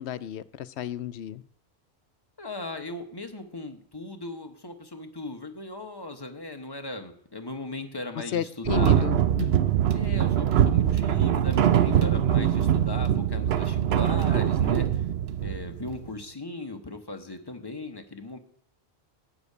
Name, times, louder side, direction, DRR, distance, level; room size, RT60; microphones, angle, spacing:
voice 1, 0.0-1.4 8.3-9.5 11.8-12.3, left 10 dB, 85° left, 14 dB, 0.9 m, -33 dB
voice 2, 2.4-9.1 9.9-15.1 15.4-18.4, left 2 dB, 25° left, 6 dB, 1.0 m, -38 dB
sound 1, 8.7-16.1, right 10 dB, 70° right, 0.9 m, -23 dB
12.0 x 5.0 x 8.4 m, 0.65 s
omnidirectional pair, 1.1 m